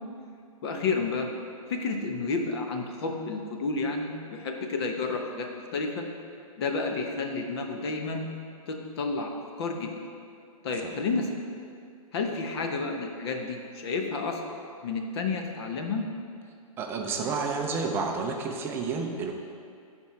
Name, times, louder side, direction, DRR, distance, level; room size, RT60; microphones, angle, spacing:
voice 1, 0.6-1.3 1.7-6.1 6.6-8.2 8.7-9.9 10.6-11.3 12.1-14.5 14.8-16.1, left 4 dB, 45° left, 3 dB, 1.0 m, -31 dB
voice 2, 16.8-19.3, right 4 dB, 10° right, 2 dB, 0.5 m, -30 dB
11.0 x 4.5 x 4.4 m, 2.4 s
hypercardioid pair, 150°, 19 cm